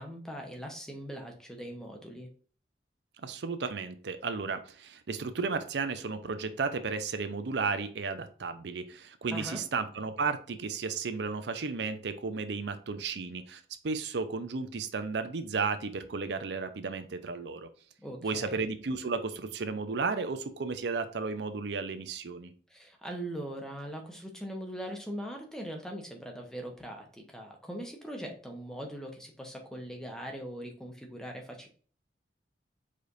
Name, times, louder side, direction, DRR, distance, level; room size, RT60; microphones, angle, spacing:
voice 1, 0.0-2.3 9.3-9.6 18.0-18.6 22.7-31.7, equal, 5° left, 2 dB, 0.8 m, -41 dB
voice 2, 3.2-17.7 18.2-22.5, right 4 dB, 70° right, 9 dB, 0.5 m, -34 dB
4.9 x 4.1 x 2.5 m, 0.42 s
head